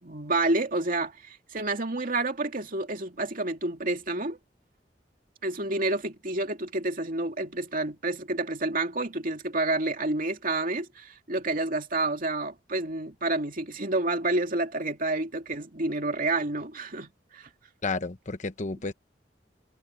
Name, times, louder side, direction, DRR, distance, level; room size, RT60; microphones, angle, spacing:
voice 1, 0.0-4.4 5.4-17.5, right 2 dB, 50° right, 2.6 m, -29 dB
voice 2, 17.8-18.9, left 3 dB, 45° left, 1.1 m, -31 dB
head